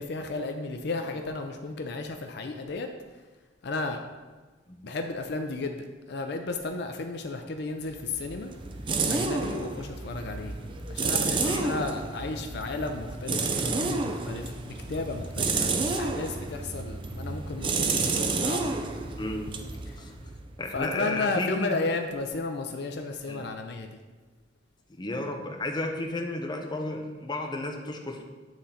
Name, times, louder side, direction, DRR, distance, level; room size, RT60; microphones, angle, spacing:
voice 1, 0.0-2.9 3.6-4.0 4.8-8.5 9.1-10.6 10.9-18.7 19.9-20.0 20.7-24.0, left 3 dB, 65° left, 5 dB, 0.5 m, -33 dB
sound 1, 7.9-20.6, right 3 dB, 30° right, 0.5 m, -30 dB
voice 2, 19.2-19.5 20.0-20.1 20.6-21.8 23.3-23.4 25.0-28.2, left 2 dB, 25° left, 2 dB, 0.7 m, -33 dB
8.9 x 3.8 x 4.2 m, 1.3 s
head